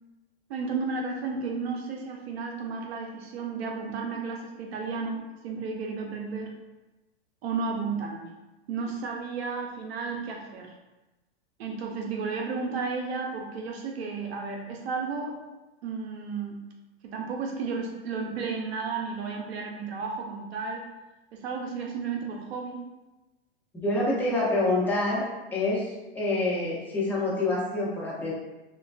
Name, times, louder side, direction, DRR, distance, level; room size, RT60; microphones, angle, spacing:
voice 1, 0.5-6.5 7.4-8.3 8.7-10.7 11.6-15.4 15.8-16.6 17.0-20.9 21.3-22.8 24.1-24.2, right 4 dB, 75° right, 1 dB, 0.5 m, -33 dB
voice 2, 23.7-25.2 25.5-28.3, left 2 dB, 5° left, -7 dB, 0.5 m, -27 dB
3.1 x 2.2 x 2.4 m, 1.1 s
hypercardioid pair, 135°, 31 cm